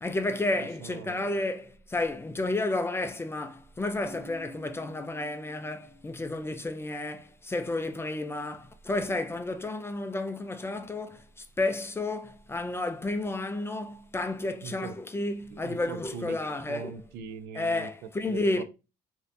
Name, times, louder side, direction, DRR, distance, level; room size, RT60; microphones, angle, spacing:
voice 1, 0.0-16.9 17.5-18.6, left 2 dB, 15° left, 0.4 m, -31 dB
voice 2, 0.6-1.3 14.6-14.9 15.5-16.4 16.7-18.6, right 6 dB, 75° right, 0.4 m, -41 dB
Keyboard (musical), 4.0-6.7, equal, 30° right, 1.0 m, -51 dB
3.2 x 2.6 x 2.6 m
cardioid pair, 110°, 17 cm